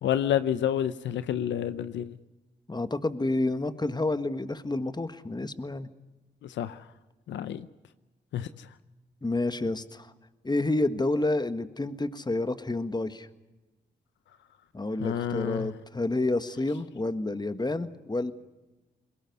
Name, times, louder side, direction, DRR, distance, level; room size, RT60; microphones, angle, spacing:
voice 1, 0.0-2.2 6.4-6.8 7.3-7.7 8.3-8.7 15.0-15.7, left 10 dB, 85° left, 0.7 m, -29 dB
voice 2, 2.7-5.9 9.2-10.1 10.4-13.3 14.7-18.3, left 2 dB, 20° left, 1.6 m, -29 dB
21.5 x 18.5 x 9.6 m
supercardioid pair, 45°, 19 cm